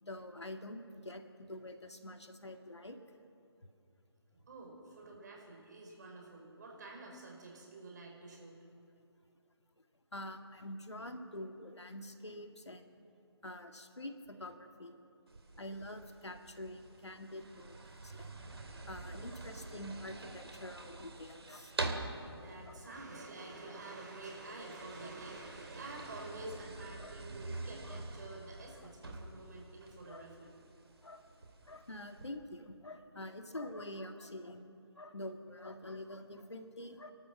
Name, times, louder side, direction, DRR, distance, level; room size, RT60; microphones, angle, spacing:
voice 1, 0.0-3.2 10.1-12.9 13.4-15.0 15.6-18.3 18.9-21.7 22.7-23.0 27.0-27.1 27.8-28.0 28.8-28.9 30.1-30.3 31.0-31.3 31.6-37.1, left 1 dB, 80° left, 6 dB, 2.1 m, -46 dB
voice 2, 4.3-8.5 22.4-30.5, right 2 dB, 40° right, 0 dB, 5.3 m, -49 dB
sound 1, 15.3-32.3, right 2 dB, 65° right, 2.5 m, -46 dB
29.0 x 12.5 x 7.7 m, 2.6 s
figure-of-eight pair, 150°, 14 cm